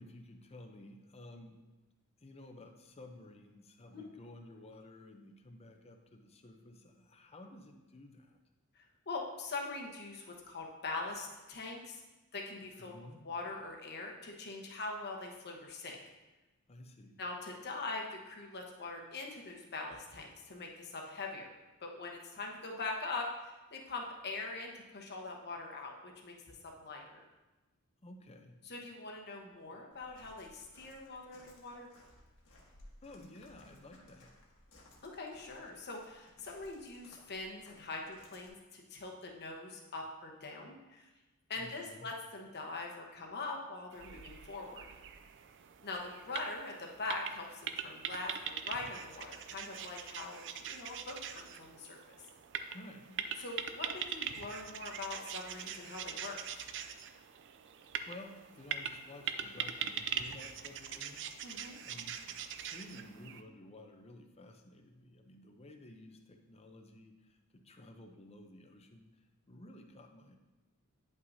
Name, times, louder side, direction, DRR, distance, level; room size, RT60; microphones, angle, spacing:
voice 1, 0.0-1.6 2.2-8.4 12.8-13.2 16.7-17.2 28.0-28.5 33.0-34.4 41.6-42.1 52.7-53.2 58.1-61.3 61.8-69.1 69.5-70.4, left 1 dB, 30° left, 4 dB, 0.6 m, -53 dB
voice 2, 8.7-12.0 12.3-12.9 13.2-16.0 17.2-21.5 21.8-27.2 28.6-31.9 35.0-41.1 41.5-44.9 45.8-52.1 53.4-56.4 61.4-61.8, left 3 dB, 50° left, 1 dB, 1.1 m, -43 dB
Walk footsteps, 29.9-38.5, left 1 dB, 65° left, 1.4 m, -61 dB
sound 1, 43.9-63.4, right 8 dB, 55° right, 0.4 m, -42 dB
9.4 x 5.7 x 2.7 m, 1.1 s
head